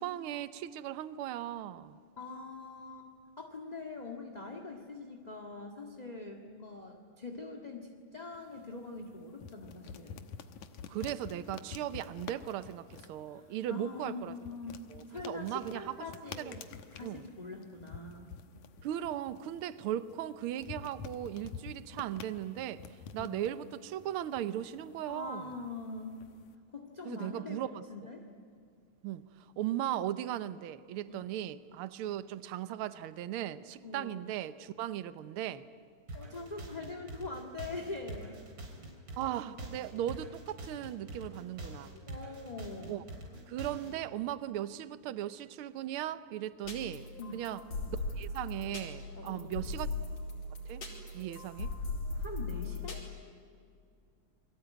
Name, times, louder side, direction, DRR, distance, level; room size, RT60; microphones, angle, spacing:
voice 1, 0.0-2.0 10.9-14.4 14.9-16.0 16.4-16.5 17.0-17.2 18.8-22.8 23.1-25.5 27.0-27.8 29.0-35.7 39.2-41.9 42.9-43.0 43.5-47.1 47.3-47.6 47.9-49.9 50.7-50.8 51.1-51.7, right 12 dB, 75° right, 13 dB, 1.2 m, -37 dB
voice 2, 2.2-10.2 13.3-16.6 16.9-18.3 23.2-23.4 25.1-26.2 26.7-28.2 31.1-31.3 33.8-34.2 36.1-38.4 42.1-43.0 47.2-47.4 49.2-49.5 51.2-51.3 52.2-53.0, left 3 dB, 20° left, 3 dB, 1.4 m, -43 dB
sound 1, 8.3-26.6, left 6 dB, 80° left, 2.6 m, -50 dB
sound 2, 36.1-44.0, right 1 dB, 40° right, 4.3 m, -45 dB
sound 3, 46.6-53.0, left 2 dB, 65° left, 5.8 m, -39 dB
29.0 x 22.5 x 9.2 m, 2.3 s
omnidirectional pair, 3.4 m